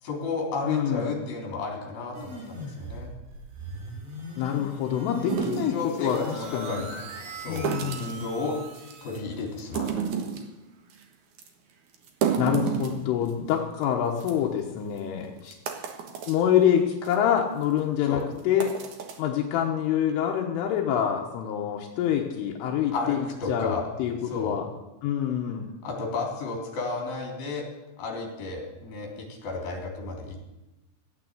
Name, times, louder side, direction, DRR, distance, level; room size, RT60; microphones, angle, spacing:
voice 1, 0.0-3.1 5.4-7.0 7.3-7.7 8.0-8.6 9.0-9.9 18.1-18.2 22.9-23.9 24.2-24.6 25.8-27.7 28.0-30.4, left 3 dB, 50° left, -1 dB, 4.9 m, -32 dB
voice 2, 0.6-1.1 4.4-6.8 7.5-8.2 12.4-15.5 16.3-18.7 19.2-24.6 25.0-25.7, left 9 dB, 85° left, 1 dB, 3.7 m, -26 dB
sound 1, 2.1-9.2, right 1 dB, 65° right, 5.6 m, -40 dB
sound 2, 5.3-6.3 7.5-8.3 8.7-9.2 9.6-10.5 10.9-11.0 11.4-11.5 11.9-13.5 13.8-13.9 14.2-14.3 15.0-15.1 15.5-16.4 16.9-17.2 17.6-17.8 18.4-19.2, right 7 dB, 90° right, 1.6 m, -31 dB
15.0 x 9.0 x 8.3 m, 1.0 s
omnidirectional pair, 5.7 m